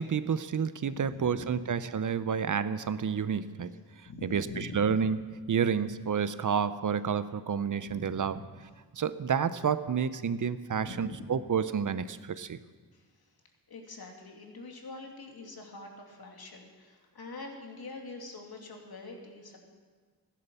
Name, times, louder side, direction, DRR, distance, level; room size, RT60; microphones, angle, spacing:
voice 1, 0.0-3.7 4.2-5.2 5.5-8.4 8.9-12.6, right 7 dB, 50° right, 14 dB, 0.7 m, -30 dB
voice 2, 0.9-1.7 4.0-5.0 7.8-8.4 10.8-11.2 12.9-13.3 13.7-19.6, left 3 dB, 70° left, 1 dB, 2.6 m, -44 dB
15.0 x 10.5 x 6.9 m, 1.5 s
wide cardioid pair, 80°, 39 cm